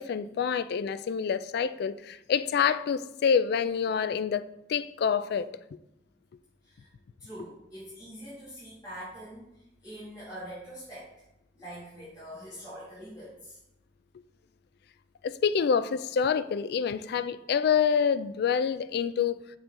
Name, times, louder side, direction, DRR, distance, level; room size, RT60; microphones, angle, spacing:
voice 1, 0.0-4.4 4.7-5.5 15.2-19.4, left 7 dB, 60° left, 0.3 m, -27 dB
voice 2, 7.2-11.1 11.5-13.6, equal, 20° left, 2.4 m, -44 dB
6.9 x 4.7 x 3.8 m
head